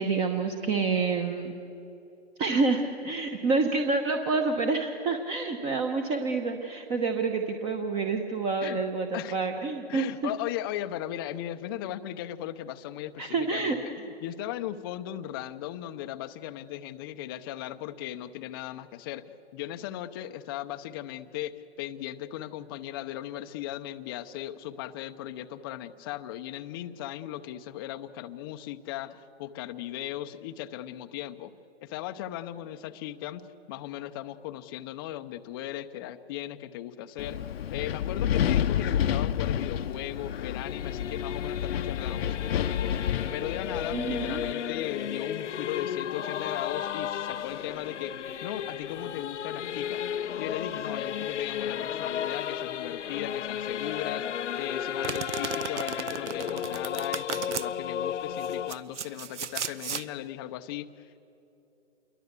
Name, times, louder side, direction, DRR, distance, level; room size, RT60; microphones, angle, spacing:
voice 1, 0.0-1.5 2.4-10.3 13.2-13.8 43.9-44.4, right 4 dB, 15° right, 5 dB, 0.9 m, -28 dB
voice 2, 9.9-19.2 19.5-31.5 31.8-37.4 37.7-42.9 43.3-50.0 50.4-61.3, left 13 dB, 20° left, 10 dB, 0.6 m, -37 dB
Wind, 37.2-44.5, left 9 dB, 60° left, 0.8 m, -30 dB
Singing / Musical instrument, 39.4-58.7, left 9 dB, 85° left, 0.8 m, -34 dB
Domestic sounds home sounds, 55.0-57.7 58.4-60.1, right 8 dB, 80° right, 1.0 m, -35 dB
28.0 x 23.0 x 8.2 m, 2.9 s
hypercardioid pair, 150°, 35 cm